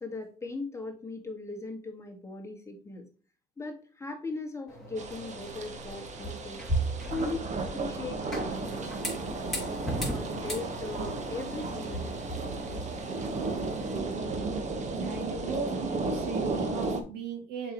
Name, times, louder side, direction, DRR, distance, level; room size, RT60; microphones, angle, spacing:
voice 1, 0.0-3.1 3.6-6.6 7.1-9.0 10.0-12.2, left 3 dB, 15° left, 2 dB, 1.8 m, -39 dB
sound 1, 4.7-13.9, right 1 dB, ahead, 3.7 m, -37 dB
sound 2, 5.0-17.0, right 3 dB, 45° right, 1.4 m, -34 dB
voice 2, 14.9-17.7, right 5 dB, 75° right, 3 dB, 2.7 m, -37 dB
6.7 x 5.4 x 3.1 m, 0.39 s
cardioid pair, 110°, 17 cm